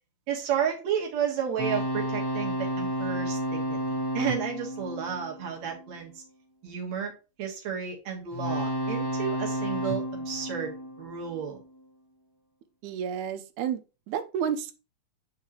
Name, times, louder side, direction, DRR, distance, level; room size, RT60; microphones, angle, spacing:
voice 1, 0.3-6.2 6.6-7.1 7.4-11.6, right 8 dB, 70° right, 0 dB, 2.6 m, -32 dB
sound 1, 1.6-6.0 8.3-11.6, equal, 20° right, 2.2 m, -31 dB
voice 2, 12.8-13.8 14.1-14.7, right 8 dB, 85° right, 9 dB, 2.1 m, -30 dB
9.3 x 3.7 x 2.9 m, 0.31 s
omnidirectional pair, 3.3 m